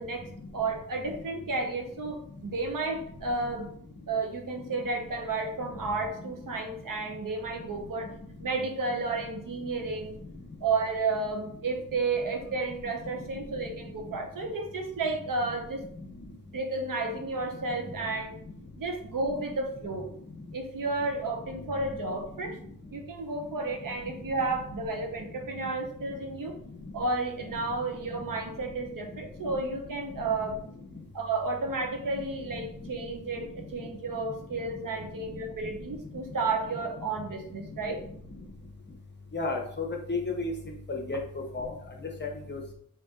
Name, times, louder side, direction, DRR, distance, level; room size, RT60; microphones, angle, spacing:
voice 1, 0.0-3.7 4.1-8.1 8.4-10.1 10.6-15.8 16.5-18.4 18.8-20.1 20.5-22.6 22.9-26.6 26.9-30.6 31.1-38.0, right 3 dB, 65° right, 4 dB, 0.9 m, -32 dB
voice 2, 39.3-40.5 40.9-41.2 41.5-41.7 42.2-42.7, left 3 dB, 30° left, 1 dB, 0.9 m, -32 dB
5.2 x 2.8 x 3.7 m, 0.64 s
wide cardioid pair, 130°, 35 cm